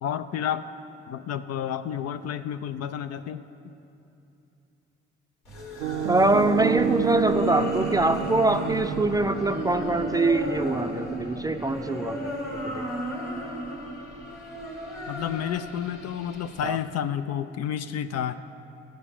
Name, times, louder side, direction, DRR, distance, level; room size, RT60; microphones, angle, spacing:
voice 1, 0.0-0.7 1.1-3.4 9.7-9.9 11.4-12.0 15.1-18.4, left 9 dB, 55° left, 11 dB, 0.5 m, -31 dB
sound 1, 5.5-16.7, equal, 75° left, 1.9 m, -34 dB
Piano, 5.8-13.7, right 9 dB, 85° right, 0.5 m, -31 dB
voice 2, 6.1-12.8 16.6-16.8, right 2 dB, 10° right, 8 dB, 0.5 m, -24 dB
13.0 x 5.1 x 7.0 m, 2.8 s
hypercardioid pair, 40°, 31 cm